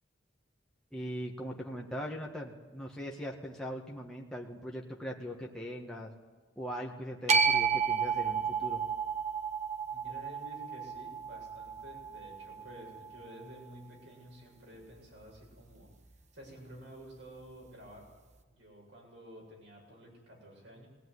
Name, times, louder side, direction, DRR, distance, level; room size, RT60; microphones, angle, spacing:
voice 1, 0.9-6.1 6.5-8.8, equal, 5° left, -2 dB, 1.7 m, -40 dB
sound 1, 7.3-13.5, right 6 dB, 35° right, 1.4 m, -32 dB
voice 2, 9.9-15.9 16.3-18.1 18.5-20.9, equal, 65° right, -1 dB, 7.7 m, -51 dB
20.0 x 18.5 x 9.8 m, 1.3 s
head